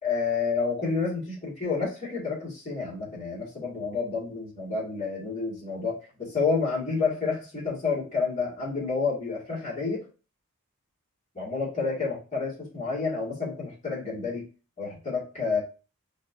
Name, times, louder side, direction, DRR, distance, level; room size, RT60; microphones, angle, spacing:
voice 1, 0.0-10.1 11.3-14.4 14.8-15.6, left 4 dB, 30° left, -6 dB, 2.3 m, -29 dB
5.1 x 3.4 x 2.7 m, 0.33 s
head